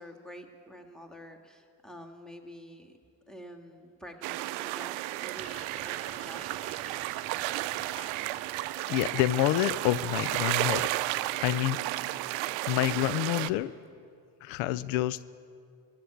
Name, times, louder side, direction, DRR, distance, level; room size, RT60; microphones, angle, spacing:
voice 1, 0.0-3.0 3.3-6.6, equal, ahead, 3 dB, 1.9 m, -48 dB
sound 1, 4.2-13.5, right 18 dB, 80° right, 0.6 m, -33 dB
sound 2, 5.4-9.1 10.9-11.0, left 5 dB, 15° left, 0.6 m, -53 dB
voice 2, 8.9-10.9 11.4-12.1 12.7-13.7 14.4-15.2, left 14 dB, 80° left, 18 dB, 0.5 m, -28 dB
15.5 x 8.6 x 9.9 m, 2.3 s
supercardioid pair, 70°, 46 cm